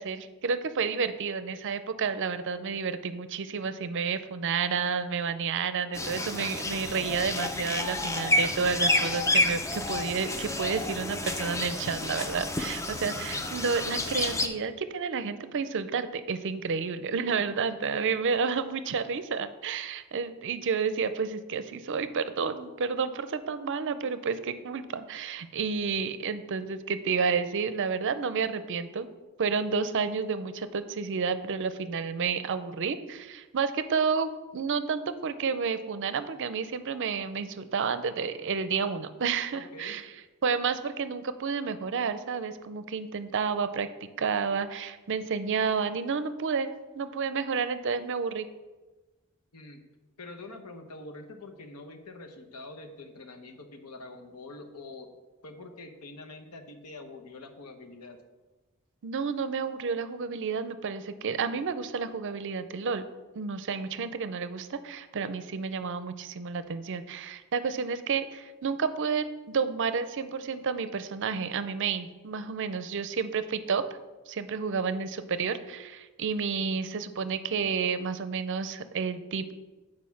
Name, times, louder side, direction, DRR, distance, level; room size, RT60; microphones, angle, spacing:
voice 1, 0.0-29.1 29.4-40.0 40.4-46.7 47.0-48.5 59.0-63.0 63.3-73.9 74.3-79.5, right 5 dB, 55° right, 12 dB, 0.5 m, -30 dB
sound 1, 5.9-14.5, left 2 dB, 15° left, 0.5 m, -29 dB
voice 2, 39.5-40.0 49.5-49.8 50.2-55.1 55.4-58.2, left 2 dB, 85° left, 6 dB, 1.0 m, -45 dB
8.4 x 4.7 x 5.7 m, 1.2 s
head